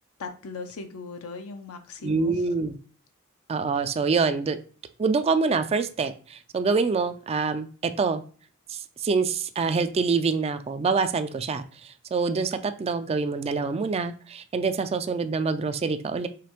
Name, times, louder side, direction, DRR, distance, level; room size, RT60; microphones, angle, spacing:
voice 1, 0.2-2.5, left 4 dB, 85° left, 6 dB, 0.6 m, -38 dB
voice 2, 2.0-2.8 3.5-4.6 5.0-8.2 8.7-16.3, right 4 dB, 30° right, 10 dB, 0.3 m, -26 dB
5.0 x 3.5 x 2.9 m, 0.40 s
head